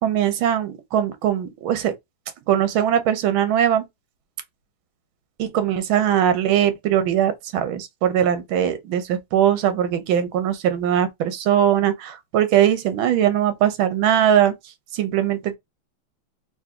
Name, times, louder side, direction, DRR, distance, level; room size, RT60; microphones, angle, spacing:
voice 1, 0.0-1.9 2.5-3.8 5.4-14.5 14.9-15.6, right 10 dB, 80° right, 1.6 m, -20 dB
3.9 x 2.9 x 3.5 m
omnidirectional pair, 2.3 m